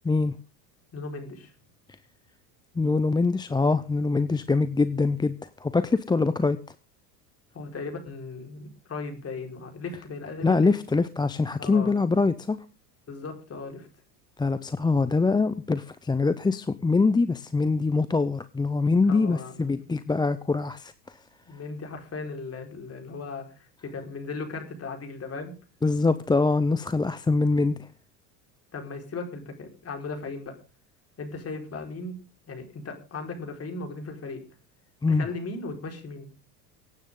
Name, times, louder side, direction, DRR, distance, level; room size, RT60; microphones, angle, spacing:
voice 1, 0.0-0.3 2.8-6.6 10.4-12.6 14.4-21.2 25.8-27.9 35.0-35.3, left 3 dB, 10° left, 13 dB, 0.6 m, -24 dB
voice 2, 0.9-1.5 7.5-10.7 11.6-11.9 13.1-13.9 19.1-19.8 21.5-25.5 28.7-30.6 31.2-32.2 32.5-34.4 35.1-36.3, left 3 dB, 30° left, 3 dB, 4.8 m, -37 dB
24.5 x 9.1 x 3.8 m, 0.32 s
hypercardioid pair, 90°, 47 cm